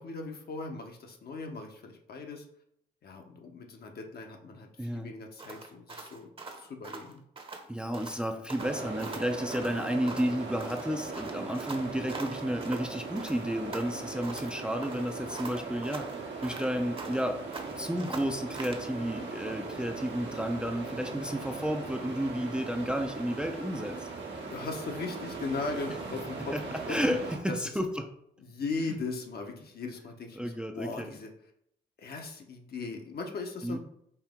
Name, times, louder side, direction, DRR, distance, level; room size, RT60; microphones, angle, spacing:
voice 1, 0.0-2.4 3.0-6.3 6.6-7.2 24.4-26.5 26.9-27.2 27.4-27.6 28.4-31.3 32.0-33.8, left 3 dB, 55° left, 3 dB, 0.9 m, -38 dB
voice 2, 4.8-5.1 7.7-17.4 17.8-24.1 26.5-26.6 26.9-27.2 27.6-28.1 30.4-31.2 33.6-33.8, equal, 5° right, 4 dB, 0.5 m, -32 dB
sound 1, 5.4-7.7 7.9-8.2 8.5-10.4 10.6-12.9 13.2-14.5 14.8-17.3 17.5-18.9, right 3 dB, 30° right, 0.9 m, -43 dB
sound 2, 8.6-27.4, right 4 dB, 70° right, 1.2 m, -39 dB
4.5 x 2.8 x 3.6 m, 0.71 s
supercardioid pair, 60°, 19 cm